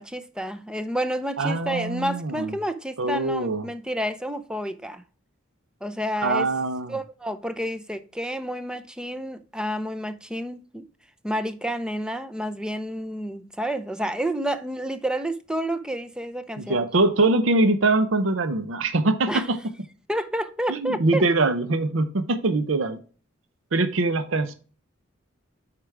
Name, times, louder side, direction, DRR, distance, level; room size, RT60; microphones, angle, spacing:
voice 1, 0.0-5.0 5.8-6.5 6.9-10.8 11.2-16.8 19.3-19.5 20.1-21.2, equal, 5° right, 0.5 m, -30 dB
voice 2, 1.4-2.5 3.0-3.7 6.2-6.9 16.6-19.6 20.7-23.0 23.7-24.5, right 2 dB, 70° right, 0.7 m, -23 dB
8.2 x 5.0 x 3.3 m
head